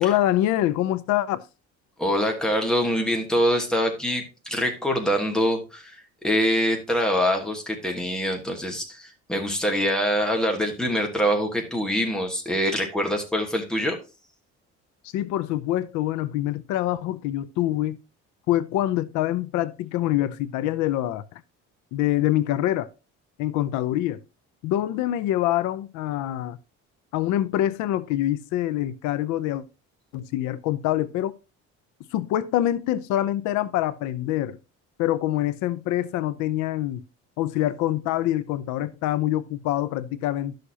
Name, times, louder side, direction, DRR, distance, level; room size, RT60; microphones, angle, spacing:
voice 1, 0.0-1.4 15.1-18.0 18.5-21.2 21.9-22.9 23.4-24.2 24.6-26.6 27.1-29.6 30.1-31.3 32.1-34.6 35.0-37.0 37.4-40.5, left 13 dB, 80° left, 0.6 m, -25 dB
voice 2, 2.0-14.0, equal, ahead, 1.3 m, -24 dB
11.0 x 6.5 x 2.8 m
cardioid pair, 175°, 29 cm